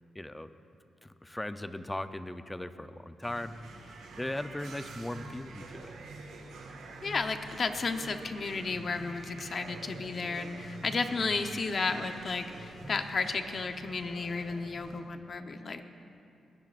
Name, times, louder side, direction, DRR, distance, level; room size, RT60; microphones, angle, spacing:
voice 1, 0.1-0.5 1.0-3.5 4.2-5.9, left 1 dB, 15° left, 10 dB, 0.6 m, -38 dB
sound 1, 3.2-15.0, right 3 dB, 85° right, 1.7 m, -46 dB
voice 2, 7.0-15.8, left 4 dB, 50° left, 7 dB, 0.9 m, -33 dB
21.0 x 16.5 x 2.6 m, 2.6 s
cardioid pair, 75°, 0 cm